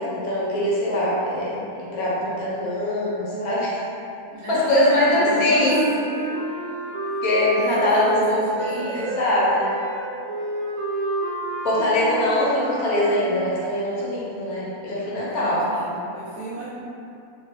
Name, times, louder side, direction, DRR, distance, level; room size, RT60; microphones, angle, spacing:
voice 1, 0.0-3.8 4.5-5.9 7.2-9.7 11.6-15.7, left 1 dB, 75° left, -7 dB, 1.2 m, -22 dB
voice 2, 4.3-5.8 6.0-6.4 7.0-7.2 7.6-9.1 15.3-16.7, right 2 dB, 60° right, -11 dB, 0.9 m, -33 dB
sound 1, 4.5-13.2, right 2 dB, 80° right, 1.1 m, -30 dB
3.0 x 2.7 x 3.1 m, 2.7 s
omnidirectional pair, 1.6 m